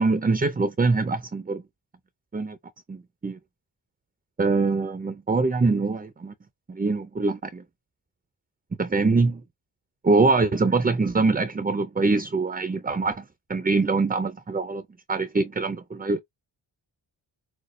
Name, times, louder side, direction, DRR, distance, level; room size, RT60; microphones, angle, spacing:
voice 1, 0.0-1.6 2.3-2.6 2.9-3.4 4.4-6.3 6.7-7.6 8.8-9.4 10.0-16.2, right 3 dB, 20° right, 0.4 m, -24 dB
6.4 x 2.2 x 3.2 m
wide cardioid pair, 170°, 48 cm